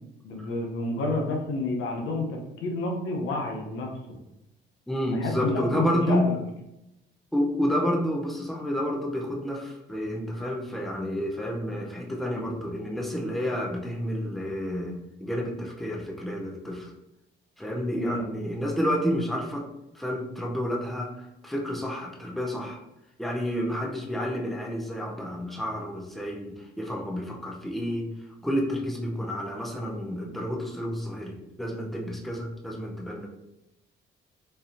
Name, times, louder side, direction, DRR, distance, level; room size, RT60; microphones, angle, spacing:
voice 1, 0.2-4.2 5.1-6.3 18.0-18.3, left 2 dB, 85° left, 1 dB, 0.7 m, -30 dB
voice 2, 4.9-6.3 7.3-16.9 17.6-19.7 19.9-21.1 21.4-22.8 23.2-28.1 28.4-33.3, equal, ahead, -1 dB, 0.6 m, -30 dB
4.3 x 2.6 x 2.6 m, 0.89 s
cardioid pair, 90°, 20 cm